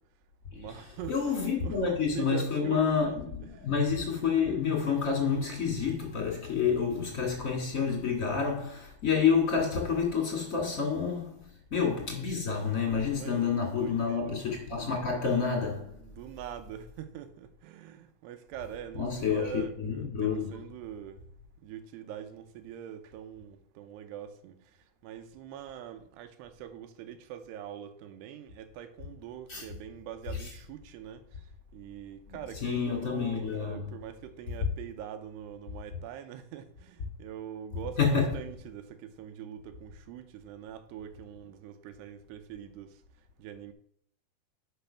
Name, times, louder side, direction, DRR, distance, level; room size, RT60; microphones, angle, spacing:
voice 1, 0.5-1.3 1.6-1.8 2.1-3.7 13.1-14.4 15.9-21.2 21.6-24.6 25.0-31.2 31.7-42.9 43.4-43.7, right 10 dB, 85° right, 3.0 m, -43 dB
voice 2, 1.1-16.0 18.9-20.6 29.5-29.7 30.3-30.5 32.3-33.9 38.0-38.3, left 6 dB, 25° left, 1.9 m, -29 dB
10.5 x 5.2 x 5.8 m
omnidirectional pair, 4.7 m